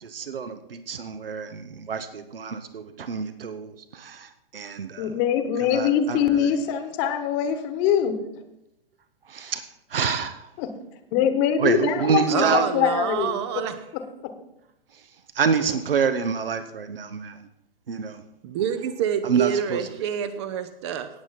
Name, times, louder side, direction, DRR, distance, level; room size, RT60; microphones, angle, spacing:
voice 1, 0.0-5.1 5.6-6.5 9.3-9.6 9.9-10.5 11.6-12.7 15.3-17.4 17.9-18.2 19.2-19.8, right 6 dB, 70° right, 11 dB, 0.9 m, -27 dB
voice 2, 5.0-8.2 10.6-10.7 11.1-13.6 13.9-14.3, left 8 dB, 30° left, 9 dB, 1.3 m, -23 dB
voice 3, 12.3-13.8 18.4-21.1, right 9 dB, 30° right, 11 dB, 0.7 m, -27 dB
18.0 x 7.2 x 4.2 m, 0.85 s
figure-of-eight pair, 115°, 30 cm